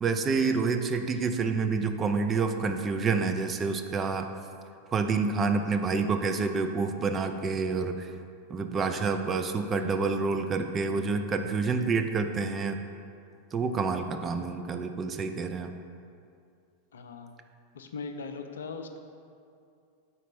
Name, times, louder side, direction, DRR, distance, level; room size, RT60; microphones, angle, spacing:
voice 1, 0.0-4.3 4.9-8.1 8.5-12.8 13.5-15.7, right 4 dB, 20° right, 6 dB, 0.4 m, -28 dB
voice 2, 16.9-17.3 17.7-19.0, left 4 dB, 65° left, 7 dB, 0.4 m, -39 dB
5.1 x 4.1 x 5.6 m, 2.4 s
figure-of-eight pair, 90°, 0 cm